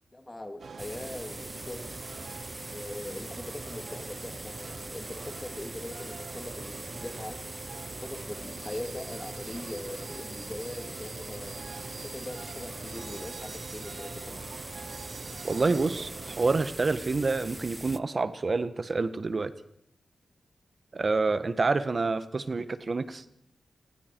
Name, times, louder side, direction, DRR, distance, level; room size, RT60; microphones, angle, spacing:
voice 1, 0.1-1.9 2.6-7.4 8.0-11.6 12.0-14.4, left 1 dB, 20° left, 5 dB, 2.5 m, -41 dB
sound 1, 0.6-16.7, right 5 dB, 70° right, 1.2 m, -44 dB
sound 2, 0.8-18.0, right 1 dB, 15° right, 0.8 m, -42 dB
voice 2, 15.4-19.5 20.9-23.2, right 3 dB, 45° right, 12 dB, 1.3 m, -28 dB
29.0 x 19.5 x 4.6 m, 0.72 s
wide cardioid pair, 85°, 0 cm